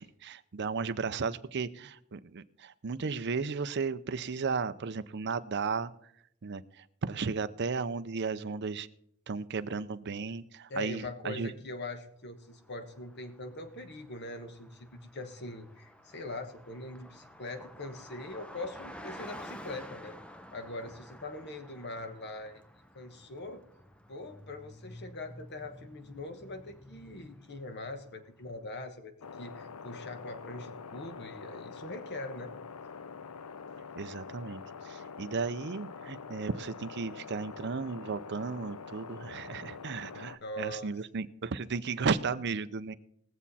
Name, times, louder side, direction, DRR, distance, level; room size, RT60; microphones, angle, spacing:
voice 1, 0.0-5.9 6.4-8.9 9.3-11.5 33.9-42.9, right 5 dB, 50° right, 11 dB, 0.5 m, -34 dB
voice 2, 10.7-20.2 20.5-22.6 22.9-23.6 24.1-32.5 40.4-40.9, left 2 dB, 50° left, 8 dB, 1.3 m, -42 dB
Car passing by, 12.5-28.6, equal, 5° left, 0.6 m, -51 dB
sound 1, 29.2-40.4, left 5 dB, 85° left, 0.6 m, -45 dB
20.0 x 7.3 x 4.2 m, 0.74 s
head